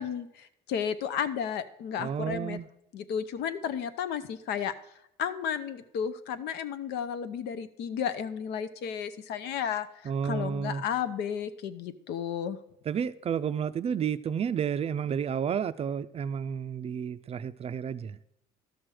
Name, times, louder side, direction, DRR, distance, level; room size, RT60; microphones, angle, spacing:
voice 1, 0.0-2.6 2.9-4.7 5.2-9.9 10.2-12.6, left 8 dB, 80° left, 0.7 m, -33 dB
voice 2, 2.0-2.7 10.0-10.8 12.9-18.2, right 7 dB, 35° right, 0.4 m, -31 dB
12.5 x 6.1 x 4.8 m
cardioid pair, 110°, 17 cm